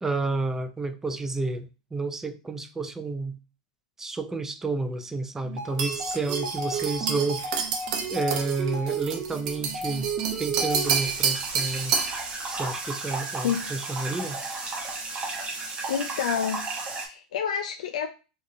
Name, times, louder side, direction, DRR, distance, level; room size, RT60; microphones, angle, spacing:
voice 1, 0.0-3.4 4.0-7.6 8.1-10.1 10.4-12.0 12.5-14.4, right 3 dB, 10° right, 9 dB, 0.4 m, -30 dB
sound 1, 5.4-11.2, right 4 dB, 55° right, 1.2 m, -33 dB
sound 2, 5.8-12.2, right 6 dB, 70° right, 0.7 m, -29 dB
sound 3, 10.7-17.1, right 3 dB, 30° right, 0.9 m, -34 dB
voice 2, 15.5-16.7 17.0-18.1, left 8 dB, 90° left, 5 dB, 0.3 m, -29 dB
4.8 x 2.5 x 2.6 m, 0.32 s
supercardioid pair, 120°, 4 cm